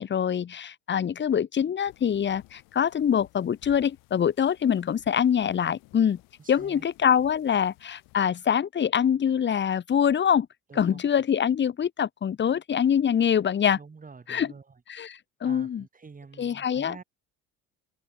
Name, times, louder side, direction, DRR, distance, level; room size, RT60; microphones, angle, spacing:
voice 1, 0.0-6.2 6.5-10.5 10.8-13.8 14.3-14.5 14.9-15.8 16.4-16.9, left 8 dB, 35° left, 1.0 m, -24 dB
sound 1, 1.9-8.2, left 23 dB, 80° left, 5.0 m, -57 dB
voice 2, 6.4-6.8 10.7-11.1 13.7-14.8 15.4-17.0, right 4 dB, 25° right, 4.5 m, -47 dB
open air
supercardioid pair, 85°, 33 cm